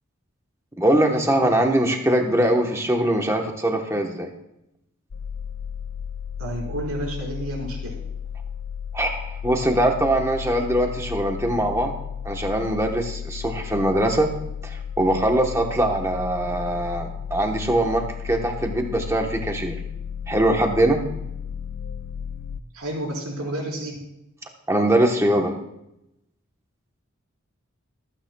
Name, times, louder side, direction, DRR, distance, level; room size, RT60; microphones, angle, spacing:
voice 1, 0.8-4.3 8.9-11.9 12.2-14.3 14.6-19.8 20.3-21.0 24.7-25.5, right 1 dB, 15° right, 2 dB, 1.1 m, -22 dB
sound 1, 5.1-22.6, left 7 dB, 55° left, 0.4 m, -34 dB
voice 2, 6.4-7.9 22.7-24.0, right 1 dB, 90° right, -1 dB, 4.2 m, -30 dB
24.0 x 9.1 x 2.3 m, 0.85 s
head